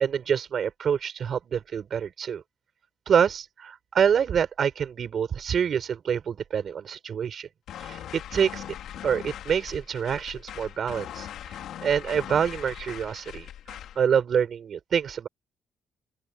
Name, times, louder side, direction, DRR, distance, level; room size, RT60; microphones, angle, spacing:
voice 1, 0.0-2.4 3.1-7.5 7.8-8.7 9.0-11.3 11.8-13.5 14.0-15.3, right 7 dB, 55° right, 4.6 m, -26 dB
sound 1, 7.7-14.0, left 11 dB, 75° left, 4.9 m, -40 dB
open air
cardioid pair, 90°, 0 cm